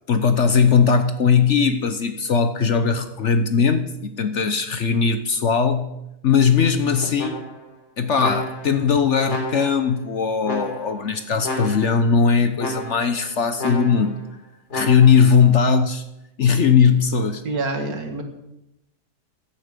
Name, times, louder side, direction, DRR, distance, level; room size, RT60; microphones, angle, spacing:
voice 1, 0.1-5.9 6.2-7.4 8.0-14.2 14.7-16.0 16.4-17.4, left 6 dB, 55° left, 9 dB, 1.0 m, -19 dB
sound 1, 7.2-7.7 8.2-8.8 9.3-9.9 10.4-11.0 11.4-12.1 12.6-13.2 13.6-14.2 14.7-15.3, left 1 dB, 80° left, 4.0 m, -31 dB
voice 2, 17.4-18.2, right 3 dB, 65° right, 5 dB, 2.2 m, -26 dB
15.5 x 10.5 x 5.2 m, 0.88 s
omnidirectional pair, 1.7 m